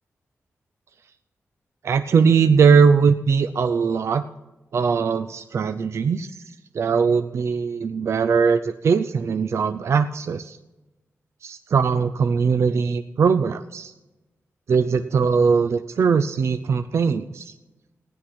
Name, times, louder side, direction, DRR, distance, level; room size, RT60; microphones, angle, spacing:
voice 1, 1.8-4.2 4.7-6.3 6.7-10.6 11.4-13.9 14.7-17.5, right 5 dB, 65° right, 9 dB, 0.5 m, -20 dB
16.0 x 10.0 x 5.9 m, 1.0 s
wide cardioid pair, 170°, 5 cm